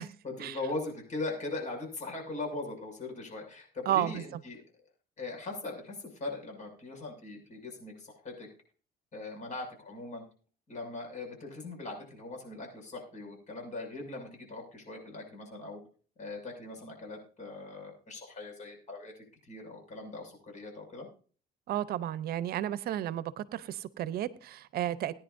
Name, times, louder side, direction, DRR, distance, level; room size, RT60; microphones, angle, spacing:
voice 1, 0.0-4.6 5.2-8.5 9.1-10.2 10.7-15.8 16.2-19.1 19.5-21.1, left 2 dB, 45° left, 3 dB, 6.4 m, -40 dB
voice 2, 3.9-4.2 21.7-25.1, right 12 dB, 65° right, 16 dB, 0.7 m, -32 dB
20.5 x 10.0 x 2.6 m, 0.41 s
cardioid pair, 110°, 17 cm